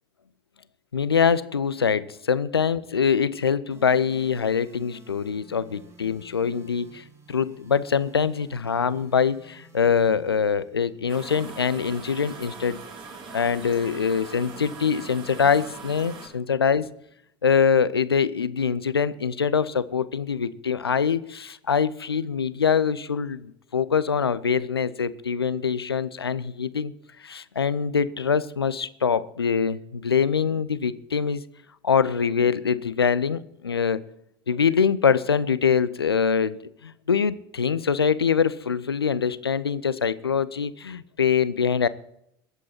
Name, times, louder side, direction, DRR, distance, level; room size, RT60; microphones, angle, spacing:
voice 1, 0.9-12.8 13.3-16.9 17.4-26.9 27.2-31.4 31.8-34.0 34.5-41.9, left 6 dB, 80° left, 17 dB, 0.6 m, -24 dB
sound 1, 3.7-11.7, right 3 dB, 25° right, 4.3 m, -53 dB
sound 2, 11.1-16.3, right 4 dB, 40° right, 3.4 m, -41 dB
22.0 x 8.4 x 4.4 m, 0.76 s
figure-of-eight pair, 70°, 13 cm